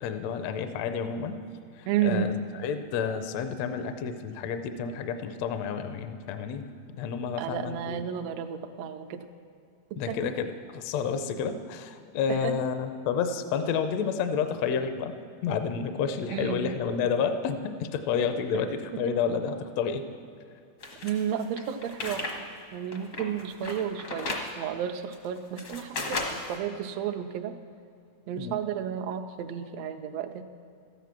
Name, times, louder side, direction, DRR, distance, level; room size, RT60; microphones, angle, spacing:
voice 1, 0.0-1.4 1.8-6.6 7.0-8.0 10.0-15.2 15.4-20.1 28.4-28.6, left 6 dB, 75° left, 8 dB, 1.6 m, -30 dB
voice 2, 1.9-2.3 7.4-9.2 9.9-10.2 12.3-12.5 16.3-16.7 21.0-22.2 22.7-27.5 28.3-30.4, right 9 dB, 80° right, 6 dB, 1.5 m, -32 dB
sound 1, 20.8-22.4 22.7-24.5 25.1-26.6, left 3 dB, 60° left, 0.8 m, -35 dB
13.0 x 9.3 x 5.9 m, 2.4 s
omnidirectional pair, 3.5 m